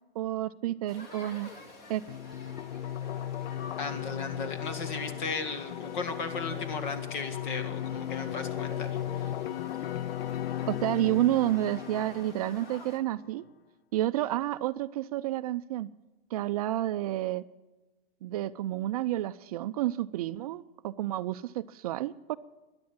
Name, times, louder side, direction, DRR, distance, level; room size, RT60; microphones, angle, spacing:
voice 1, 0.2-1.5 1.9-2.0 10.7-13.5 13.9-15.9 16.3-17.4 18.2-22.4, right 14 dB, 40° right, 13 dB, 0.4 m, -30 dB
sound 1, 0.9-13.0, left 3 dB, 30° left, 2.4 m, -49 dB
sound 2, 2.1-13.1, left 11 dB, 85° left, 0.5 m, -36 dB
voice 2, 3.8-9.4, left 4 dB, 55° left, 9 dB, 2.1 m, -36 dB
sound 3, 7.9-9.8 10.1-11.4 11.8-12.8 13.4-13.5, equal, 10° left, 4.2 m, -52 dB
13.5 x 10.5 x 8.8 m, 1.2 s
hypercardioid pair, 145°, 29 cm